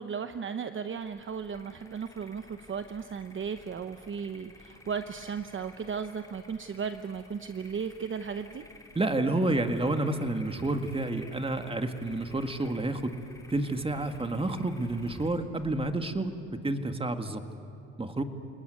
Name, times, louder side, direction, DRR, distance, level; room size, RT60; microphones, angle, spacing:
voice 1, 0.0-8.6, right 6 dB, 40° right, 9 dB, 0.9 m, -36 dB
sound 1, 0.7-17.1, left 2 dB, 10° left, 3.3 m, -53 dB
voice 2, 9.0-13.1 13.5-17.4 18.0-18.2, right 2 dB, 20° right, 7 dB, 1.9 m, -29 dB
28.5 x 19.5 x 9.5 m, 2.9 s
cardioid pair, 90°, 30 cm